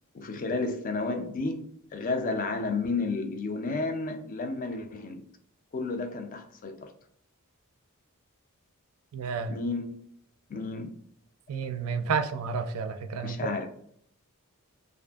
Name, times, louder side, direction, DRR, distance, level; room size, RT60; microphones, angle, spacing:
voice 1, 0.1-5.2 5.7-6.9 9.5-10.0 10.5-10.9 13.2-13.7, left 3 dB, 35° left, 0.3 m, -32 dB
voice 2, 9.1-9.5 11.5-13.7, right 5 dB, 70° right, 0.3 m, -31 dB
2.5 x 2.4 x 2.3 m
head